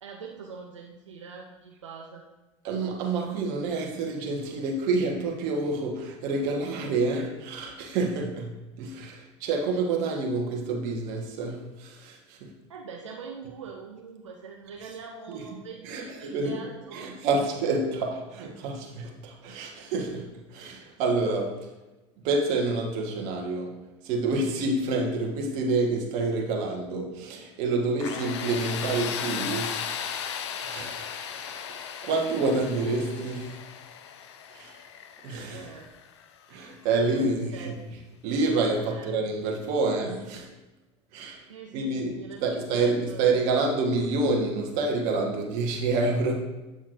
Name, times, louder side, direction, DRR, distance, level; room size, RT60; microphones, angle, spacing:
voice 1, 0.0-2.2 12.7-17.2 35.5-35.9 37.1-38.0 38.9-39.2 41.5-42.4 42.7-43.2, right 5 dB, 85° right, 0 dB, 0.6 m, -43 dB
voice 2, 2.6-12.5 15.3-15.5 15.8-16.6 16.9-21.7 22.2-23.7 24.0-30.0 30.6-33.6 34.5-34.8 35.2-35.7 36.5-37.8 38.2-40.5 41.1-41.4 41.7-42.1 42.4-46.3, right 3 dB, 60° right, 1 dB, 1.4 m, -28 dB
Tools, 28.0-36.8, left 8 dB, 70° left, 0.6 m, -36 dB
7.8 x 7.0 x 2.6 m, 1.1 s
hypercardioid pair, 75°, 15 cm